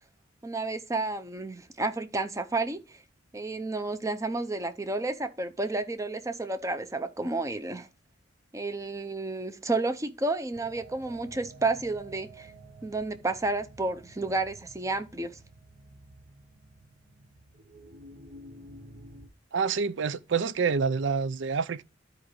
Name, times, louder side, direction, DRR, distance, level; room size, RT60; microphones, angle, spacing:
voice 1, 0.4-3.0 3.3-7.9 8.5-12.5 12.8-15.4, right 2 dB, 15° right, 0.6 m, -31 dB
sound 1, 10.5-19.3, right 2 dB, 50° right, 0.9 m, -51 dB
voice 2, 19.5-21.8, right 5 dB, 70° right, 0.5 m, -27 dB
12.5 x 4.9 x 3.1 m
head